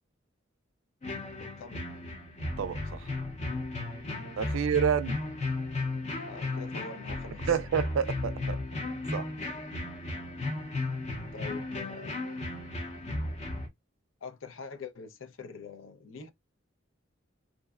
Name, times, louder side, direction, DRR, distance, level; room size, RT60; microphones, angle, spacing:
sound 1, 1.0-13.7, left 2 dB, 35° left, 0.6 m, -35 dB
voice 1, 1.4-1.8 4.5-4.7 6.2-7.6 11.3-12.2 14.2-16.3, left 4 dB, 85° left, 0.5 m, -44 dB
voice 2, 2.6-3.1 4.4-5.2 7.5-8.6 9.1-9.3, right 7 dB, 90° right, 0.3 m, -29 dB
2.5 x 2.1 x 2.3 m
head